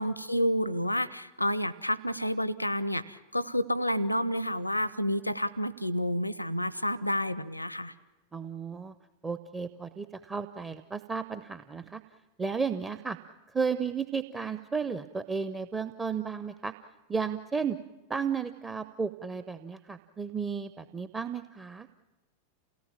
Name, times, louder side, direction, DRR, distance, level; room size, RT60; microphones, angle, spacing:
voice 1, 0.0-7.9, equal, 85° left, 19 dB, 0.7 m, -29 dB
voice 2, 8.3-8.9 9.2-12.0 12.4-13.2 13.5-16.7 17.1-17.8 18.1-21.9, right 5 dB, 15° right, 10 dB, 0.7 m, -33 dB
28.0 x 18.0 x 7.3 m, 1.2 s
figure-of-eight pair, 90°, 0 cm